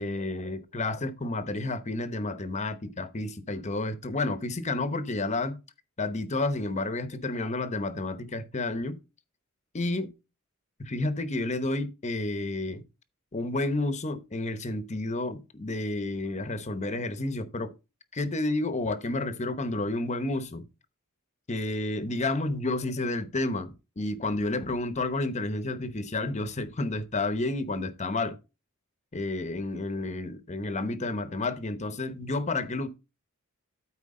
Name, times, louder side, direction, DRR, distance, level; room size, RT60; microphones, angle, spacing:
voice 1, 0.0-5.6 6.0-9.0 9.7-10.1 10.8-12.8 13.3-17.7 18.1-20.7 21.5-28.4 29.1-32.9, left 2 dB, 30° left, 0.9 m, -30 dB
13.0 x 4.5 x 3.7 m
head